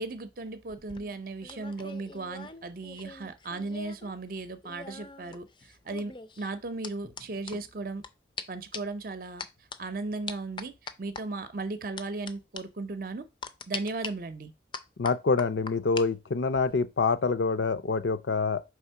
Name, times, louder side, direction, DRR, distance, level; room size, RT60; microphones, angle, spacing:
voice 1, 0.0-8.0 8.5-9.4 9.8-13.3 13.7-14.5, right 3 dB, 50° right, 0.6 m, -36 dB
sound 1, 0.7-4.1 4.4-8.1 8.4-8.5 8.7-9.0 9.4-9.8 10.3-11.2 12.0-12.3 12.6-12.7 13.4-14.1 14.7-16.1 16.4-16.7, left 4 dB, 25° left, 0.4 m, -41 dB
voice 2, 15.0-18.6, left 4 dB, 75° left, 0.5 m, -26 dB
4.9 x 3.6 x 5.6 m
head